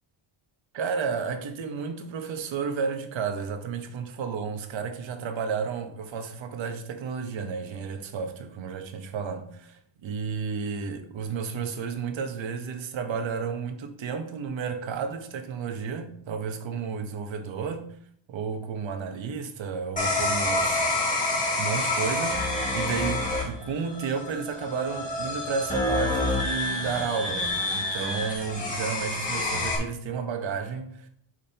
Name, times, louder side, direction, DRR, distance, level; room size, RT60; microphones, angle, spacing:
voice 1, 0.7-18.0 18.3-20.8 21.6-31.1, right 6 dB, 65° right, 1.1 m, -32 dB
sound 1, 20.0-29.8, left 2 dB, 15° left, 1.9 m, -28 dB
8.7 x 6.4 x 2.9 m
cardioid pair, 175°, 49 cm